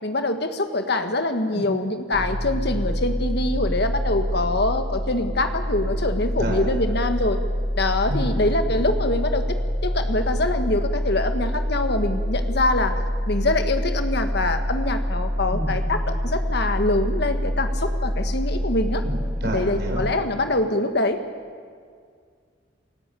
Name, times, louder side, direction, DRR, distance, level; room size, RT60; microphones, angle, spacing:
voice 1, 0.0-7.4 7.7-9.4 9.8-19.0 19.4-21.2, left 2 dB, 60° left, 7 dB, 1.6 m, -24 dB
sound 1, 2.1-20.1, equal, 20° right, 5.8 m, -26 dB
voice 2, 6.4-6.7 8.1-8.3 15.5-15.7 19.0-20.0, equal, 60° right, 1 dB, 5.2 m, -30 dB
28.5 x 16.0 x 8.4 m, 2.1 s
head